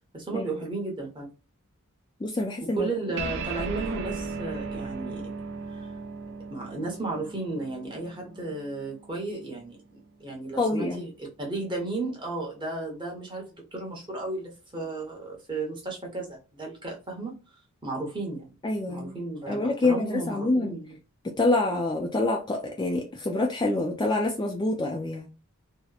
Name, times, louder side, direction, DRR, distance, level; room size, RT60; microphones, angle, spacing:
voice 1, 0.1-1.3 2.6-5.3 6.5-17.3 17.8-18.5 18.9-21.0, right 3 dB, 20° right, 0.9 m, -34 dB
voice 2, 2.2-2.9 10.6-11.0 18.6-19.2 19.5-20.7 21.2-25.3, left 2 dB, 20° left, 0.3 m, -26 dB
sound 1, 3.2-9.9, right 4 dB, 55° right, 0.4 m, -37 dB
2.8 x 2.0 x 2.3 m
head